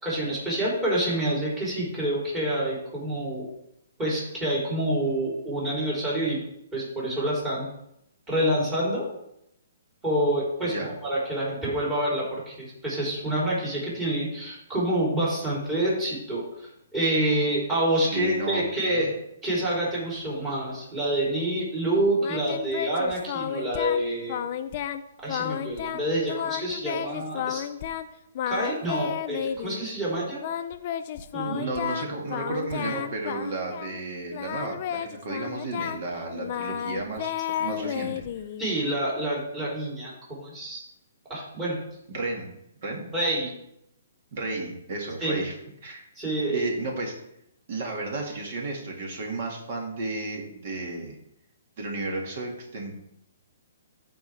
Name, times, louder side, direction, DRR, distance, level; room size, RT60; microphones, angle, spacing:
voice 1, 0.0-3.4 4.0-6.4 6.7-7.7 8.3-9.1 10.0-10.7 11.0-19.1 19.4-24.4 25.2-27.6 28.5-30.4 31.3-31.7 38.6-40.8 41.3-41.8 43.1-43.5 45.2-45.4 46.2-46.6, right 1 dB, 15° right, -7 dB, 3.6 m, -27 dB
voice 2, 17.9-19.1 31.5-37.3 37.6-38.1 42.1-42.5 42.8-43.0 44.3-45.5 45.8-46.0 46.5-47.1 47.7-51.2 51.8-52.9, right 2 dB, 50° right, 1 dB, 1.9 m, -33 dB
Singing, 22.2-24.0 24.3-25.0 25.3-26.0 26.3-28.1 28.3-29.8 30.4-34.0 34.3-38.7, left 10 dB, 40° left, 0.5 m, -32 dB
13.0 x 4.7 x 3.4 m, 0.79 s
hypercardioid pair, 155°, 0 cm